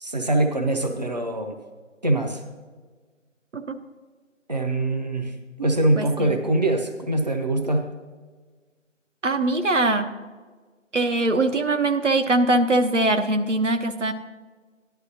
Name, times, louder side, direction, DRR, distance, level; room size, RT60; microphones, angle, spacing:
voice 1, 0.0-1.5 2.0-2.4 4.5-7.9, right 2 dB, 35° right, 4 dB, 0.7 m, -23 dB
voice 2, 6.0-6.4 9.2-10.1 10.9-14.1, right 2 dB, 65° right, 7 dB, 1.0 m, -22 dB
13.5 x 11.5 x 2.7 m, 1.4 s
figure-of-eight pair, 165°, 38 cm